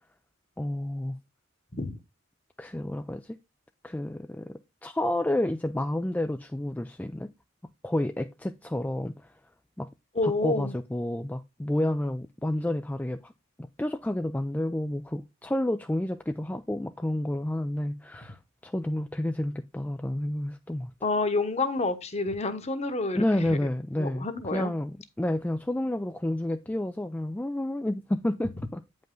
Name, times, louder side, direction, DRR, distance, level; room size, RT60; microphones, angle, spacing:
voice 1, 0.6-1.2 2.6-3.4 3.8-7.3 7.8-9.3 9.8-9.9 10.2-13.3 13.8-20.9 23.1-28.8, left 1 dB, 10° left, 0.3 m, -30 dB
voice 2, 10.1-10.7 21.0-23.6 24.0-24.7, left 3 dB, 30° left, 1.1 m, -28 dB
9.0 x 5.4 x 3.8 m
head